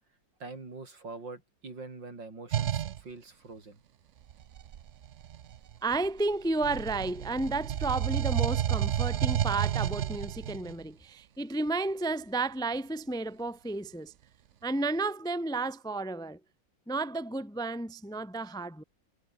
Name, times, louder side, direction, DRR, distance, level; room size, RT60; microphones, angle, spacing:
voice 1, 0.4-3.8, right 3 dB, 85° right, 5.5 m, -44 dB
sound 1, 2.5-3.0 4.3-6.2 6.6-10.7, right 10 dB, 55° right, 0.8 m, -30 dB
voice 2, 5.8-14.1 14.6-16.4 16.9-18.8, right 2 dB, 5° left, 0.6 m, -32 dB
omnidirectional pair, 1.9 m